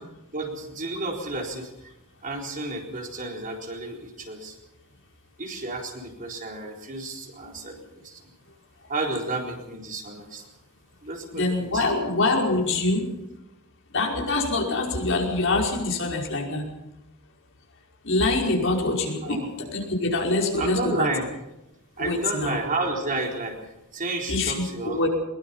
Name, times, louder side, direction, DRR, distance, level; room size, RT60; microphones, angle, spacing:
voice 1, 0.3-1.7 2.2-4.6 5.4-8.2 8.9-10.4 11.0-11.4 11.7-11.8 19.2-19.5 20.6-21.3 22.0-23.6 23.9-25.1, right 2 dB, 40° right, 1 dB, 4.1 m, -31 dB
voice 2, 11.3-13.0 13.9-16.6 18.0-21.1 22.0-22.6 24.3-25.1, left 2 dB, 60° left, 0 dB, 5.2 m, -25 dB
22.0 x 21.0 x 5.7 m, 0.91 s
head